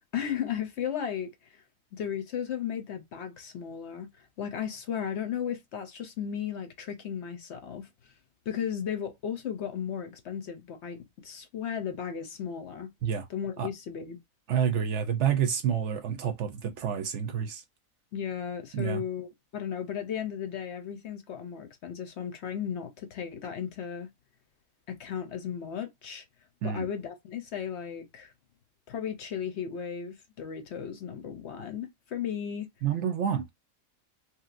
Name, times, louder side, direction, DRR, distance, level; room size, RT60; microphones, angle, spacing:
voice 1, 0.1-1.6 1.9-4.1 4.4-7.9 8.5-12.9 13.3-14.2 18.1-24.1 24.9-26.2 26.6-28.3 28.9-32.7, left 8 dB, 60° left, 0.8 m, -35 dB
voice 2, 14.5-17.6 18.7-19.0 26.6-26.9 32.8-33.4, right 8 dB, 65° right, 0.8 m, -28 dB
3.1 x 2.8 x 2.4 m
omnidirectional pair, 1.5 m